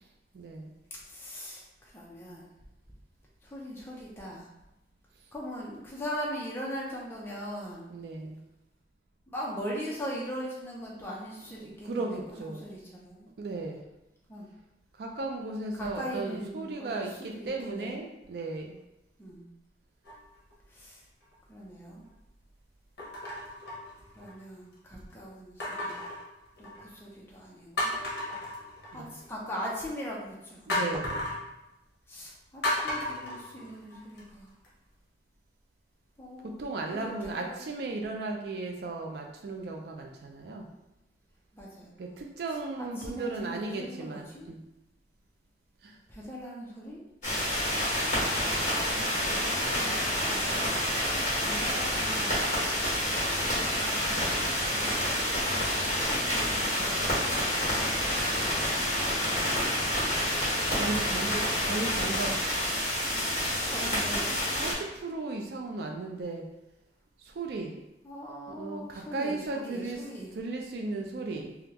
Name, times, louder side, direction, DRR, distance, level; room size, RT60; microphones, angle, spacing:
voice 1, 0.3-0.7 7.9-8.4 11.6-12.6 13.4-13.8 15.0-18.8 28.9-29.2 30.7-31.3 36.4-40.7 42.0-44.6 45.8-46.0 60.7-62.3 63.8-64.0 64.6-66.4 67.2-67.8 68.5-70.0 70.3-71.6, right 3 dB, 60° right, 1 dB, 0.4 m, -36 dB
voice 2, 0.9-2.5 3.4-4.5 5.3-7.9 9.3-12.0 12.4-13.3 14.3-14.5 15.7-18.1 19.2-19.4 20.7-21.0 21.5-22.0 24.1-26.1 26.6-28.0 28.9-30.7 32.1-34.5 36.2-36.6 36.9-37.6 41.5-42.2 42.8-44.5 46.1-47.0 48.9-50.6 51.4-52.4 53.5-55.0 56.0-58.3 58.6-59.0 61.2-61.7 63.7-64.4 68.0-70.3, equal, 15° left, -4 dB, 0.7 m, -41 dB
sound 1, 20.0-20.5 21.2-21.3 23.0-24.4 25.6-27.0 27.4-27.5 27.8-29.2 30.7-31.4 32.6-34.2 34.6-34.7, left 1 dB, 65° left, 0.9 m, -34 dB
sound 2, 47.2-64.7, equal, 45° left, 1.4 m, -28 dB
3.4 x 2.3 x 2.9 m, 0.92 s
head